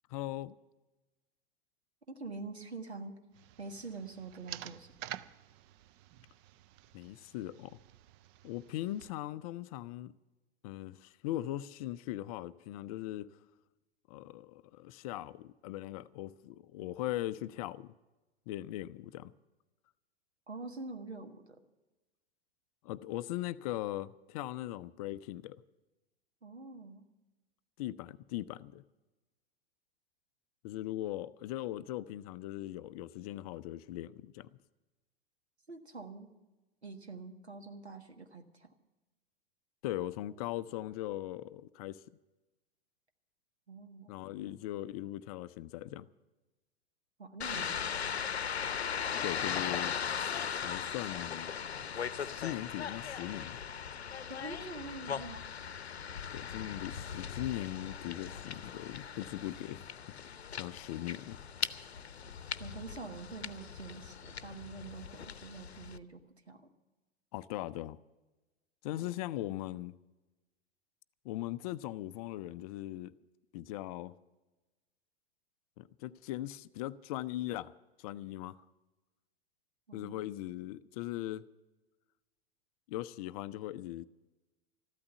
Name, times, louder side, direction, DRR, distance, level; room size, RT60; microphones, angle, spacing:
voice 1, 0.1-0.5 6.9-7.8 8.4-10.1 10.6-13.4 14.1-17.9 18.5-19.3 22.8-25.6 27.8-28.8 30.6-34.6 39.8-42.0 44.1-46.1 49.2-49.9 50.6-51.6 52.2-53.6 56.3-59.8 60.2-61.4 67.3-68.0 68.8-70.0 71.2-73.1 73.5-74.1 75.8-77.7 78.0-78.6 79.9-81.5 82.9-84.0, left 14 dB, 35° left, 0.5 m, -39 dB
voice 2, 2.1-3.2 3.6-4.9 20.5-21.6 26.4-27.1 35.7-36.3 36.8-38.7 43.7-44.2 47.2-48.0 54.3-55.5 62.6-66.2 66.5-66.7 79.9-80.5, right 3 dB, 85° right, 1.7 m, -46 dB
sound 1, 3.3-9.1, right 12 dB, 30° right, 0.4 m, -50 dB
sound 2, 47.4-66.0, left 7 dB, 75° left, 0.7 m, -39 dB
14.0 x 12.5 x 6.9 m
figure-of-eight pair, 100°, 32 cm